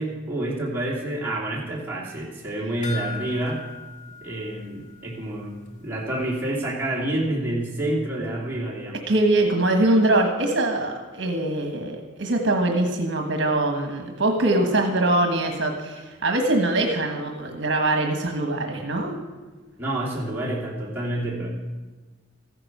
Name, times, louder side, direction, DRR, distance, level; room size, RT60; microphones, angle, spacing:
voice 1, 0.0-3.6 4.2-5.5 5.8-9.0 19.8-21.5, right 1 dB, 10° right, -6 dB, 2.7 m, -28 dB
sound 1, 2.8-5.4 5.7-5.8 6.2-6.3, left 5 dB, 40° left, 1.3 m, -39 dB
voice 2, 9.1-19.1, right 2 dB, 60° right, 4 dB, 1.3 m, -23 dB
14.5 x 9.9 x 6.0 m, 1.3 s
head